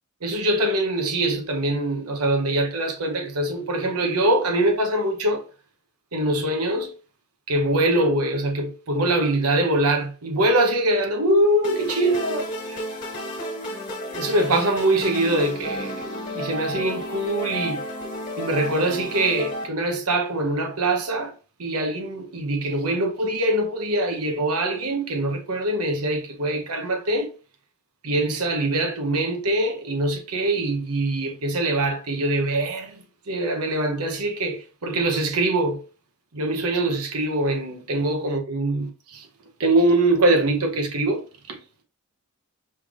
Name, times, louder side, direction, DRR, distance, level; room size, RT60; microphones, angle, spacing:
voice 1, 0.2-5.4 6.1-6.9 7.5-12.4 14.2-16.0 16.3-17.8 18.4-21.3 21.6-27.3 28.0-33.0 33.3-35.8 36.3-39.3 39.6-41.2 41.5-41.6, right 1 dB, 85° right, 0.9 m, -23 dB
sound 1, 11.6-19.6, equal, 35° left, 1.6 m, -32 dB
5.4 x 3.3 x 2.5 m
head